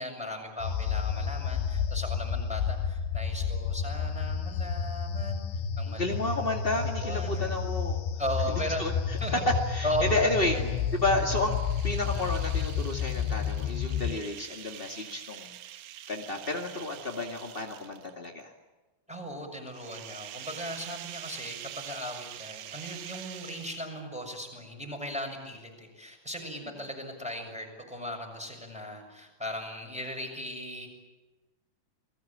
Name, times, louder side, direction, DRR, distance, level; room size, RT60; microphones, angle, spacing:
voice 1, 0.0-5.5 5.8-6.2 6.7-7.5 8.2-8.8 9.2-9.4 9.8-10.7 11.2-11.4 19.1-30.9, equal, ahead, 1 dB, 6.3 m, -37 dB
sound 1, 0.6-14.2, left 7 dB, 80° left, 3.4 m, -31 dB
voice 2, 5.8-8.0 8.8-10.6 10.9-11.6 11.8-15.5 16.1-18.5, left 2 dB, 35° left, 2 dB, 0.8 m, -31 dB
sound 2, 10.5-18.3 19.7-24.1, right 12 dB, 70° right, 2.3 m, -45 dB
29.5 x 20.5 x 8.7 m, 1.2 s
omnidirectional pair, 5.0 m